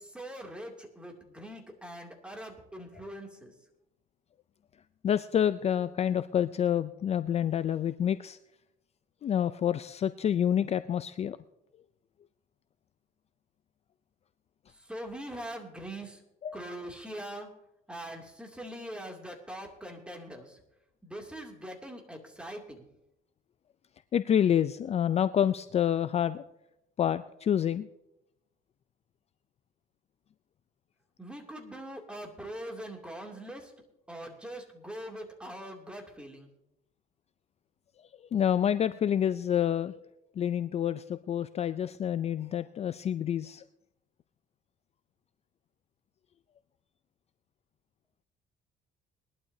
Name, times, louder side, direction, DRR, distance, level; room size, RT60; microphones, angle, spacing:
voice 1, 0.0-3.5 14.7-16.2 16.5-17.5 17.9-20.6 21.0-22.9 31.2-33.7 34.1-36.5, right 1 dB, 5° right, 1 dB, 2.6 m, -42 dB
voice 2, 5.0-8.4 9.2-11.4 16.4-16.6 24.1-26.4 27.0-27.9 38.3-40.0 40.4-43.6, left 9 dB, 40° left, 13 dB, 0.4 m, -28 dB
21.0 x 12.0 x 2.7 m, 0.86 s
cardioid pair, 110°, 17 cm